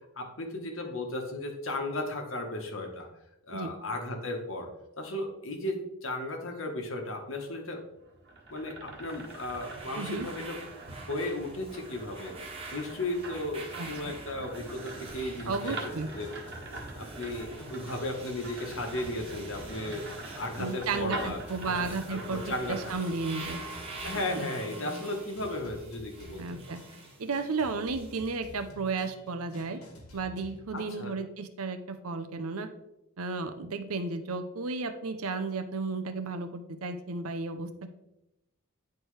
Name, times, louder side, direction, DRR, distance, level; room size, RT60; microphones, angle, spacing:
voice 1, 0.1-3.1 3.5-4.7 5.0-7.8 8.5-10.6 11.1-12.3 12.7-16.3 17.0-20.0 20.4-23.1 24.0-26.6 30.7-31.2, left 1 dB, 60° left, 2 dB, 1.2 m, -35 dB
sound 1, 7.9-22.9, right 2 dB, 50° right, 1.3 m, -43 dB
sound 2, 9.1-28.4, right 3 dB, 25° right, 1.0 m, -46 dB
voice 2, 10.0-10.3 13.8-13.9 15.5-16.1 20.6-22.4 22.7-23.6 24.3-24.5 26.4-26.8 27.2-29.8 30.1-32.7 33.2-37.9, right 4 dB, 75° right, 9 dB, 0.7 m, -33 dB
sound 3, 15.1-30.6, left 1 dB, 85° left, 1.7 m, -51 dB
9.6 x 4.5 x 3.3 m, 0.88 s
head